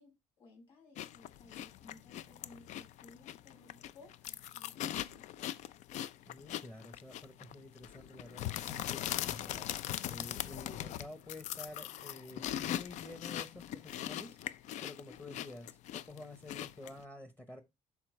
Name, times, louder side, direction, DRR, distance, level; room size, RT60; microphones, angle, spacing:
voice 1, 0.0-5.6 15.0-15.4, left 3 dB, 45° left, 5.7 m, -59 dB
sound 1, 1.0-17.0, left 12 dB, 75° left, 0.4 m, -41 dB
voice 2, 6.2-9.7 10.1-15.7 15.9-17.6, left 2 dB, 15° left, 0.9 m, -50 dB
11.0 x 4.3 x 3.1 m
cardioid pair, 155°, 12 cm